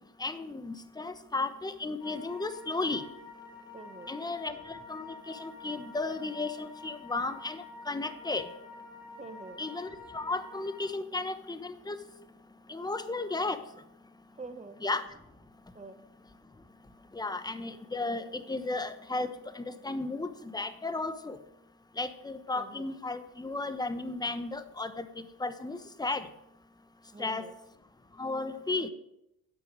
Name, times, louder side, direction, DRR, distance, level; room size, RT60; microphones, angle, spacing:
voice 1, 0.2-3.0 4.1-8.5 9.6-12.0 12.7-13.6 14.8-15.0 17.1-19.3 19.5-21.4 22.0-26.3 27.2-27.4 28.2-28.9, left 3 dB, 10° left, 11 dB, 1.1 m, -34 dB
sound 1, 2.0-10.9, left 3 dB, 70° left, 2.7 m, -48 dB
voice 2, 3.7-4.1 9.2-9.6 14.4-14.8 15.7-16.0 22.5-22.9 27.1-27.5 28.7-28.9, right 3 dB, 15° right, 9 dB, 1.3 m, -46 dB
10.5 x 8.5 x 7.5 m, 0.83 s
cardioid pair, 85°, 37 cm